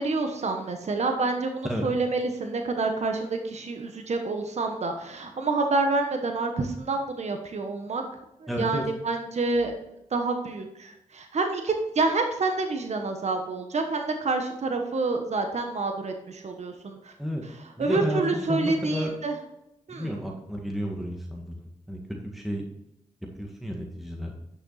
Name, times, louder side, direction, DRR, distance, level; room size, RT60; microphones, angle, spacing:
voice 1, 0.0-8.0 8.4-9.8 10.1-17.1 17.4-19.4 19.9-20.2, right 3 dB, 60° right, 4 dB, 1.2 m, -28 dB
voice 2, 8.5-8.9 17.2-17.4 17.8-18.2 18.5-19.1 19.9-22.6 23.4-24.3, equal, ahead, 0 dB, 1.9 m, -32 dB
9.8 x 6.4 x 4.1 m, 0.87 s
cardioid pair, 50°, 13 cm